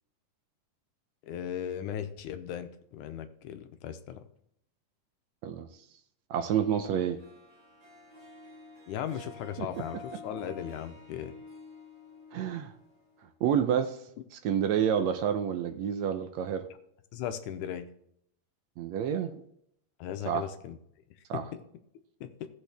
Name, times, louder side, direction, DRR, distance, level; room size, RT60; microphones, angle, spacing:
voice 1, 1.2-4.3 8.9-11.3 17.1-17.9 20.0-20.8 21.3-21.4 22.2-22.5, left 9 dB, 75° left, 8 dB, 2.1 m, -37 dB
voice 2, 6.3-7.2 9.6-9.7 12.3-12.7 13.4-14.0 14.4-16.7 18.8-19.4 20.3-20.4 21.3-21.4, right 8 dB, 75° right, 8 dB, 1.7 m, -28 dB
Harp, 7.2-13.4, left 3 dB, 30° right, 4.2 m, -49 dB
16.5 x 6.4 x 3.4 m, 0.72 s
omnidirectional pair, 3.7 m